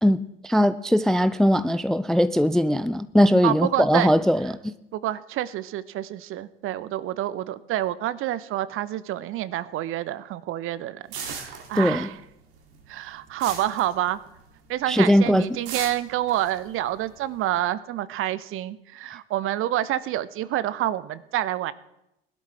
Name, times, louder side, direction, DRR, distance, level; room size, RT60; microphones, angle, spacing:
voice 1, 0.0-4.7 11.8-12.1 14.9-15.5, equal, ahead, 0.4 m, -20 dB
voice 2, 3.4-4.1 4.9-12.1 12.9-14.2 14.7-21.7, right 13 dB, 45° right, 0.8 m, -28 dB
sound 1, 11.1-12.3 12.5-14.6 14.9-15.2 15.7-17.6, right 6 dB, 65° right, 2.2 m, -37 dB
21.0 x 11.5 x 3.4 m
figure-of-eight pair, 60°, 30 cm